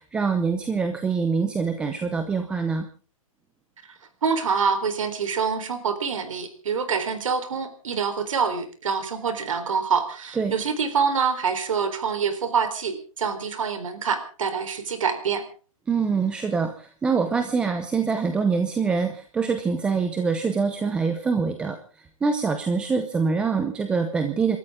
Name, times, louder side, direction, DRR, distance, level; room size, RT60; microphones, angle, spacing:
voice 1, 0.0-2.9 10.4-10.5 15.9-24.6, right 5 dB, 5° right, 7 dB, 0.7 m, -25 dB
voice 2, 4.2-15.4, right 6 dB, 60° right, 9 dB, 4.1 m, -26 dB
29.0 x 13.0 x 3.7 m, 0.38 s
hypercardioid pair, 170°, 18 cm